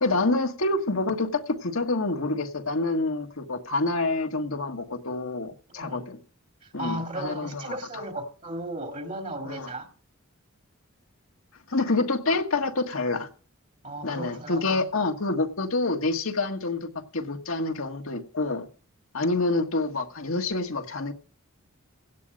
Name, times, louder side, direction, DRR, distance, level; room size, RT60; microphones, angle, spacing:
voice 1, 0.0-6.2 6.7-7.8 9.4-9.7 11.7-13.3 14.0-16.9 17.1-18.7 19.1-21.1, left 2 dB, 75° left, 5 dB, 1.6 m, -27 dB
voice 2, 5.7-6.1 6.6-9.9 13.8-14.9, right 1 dB, 35° right, 5 dB, 2.1 m, -36 dB
17.0 x 10.0 x 5.2 m, 0.41 s
head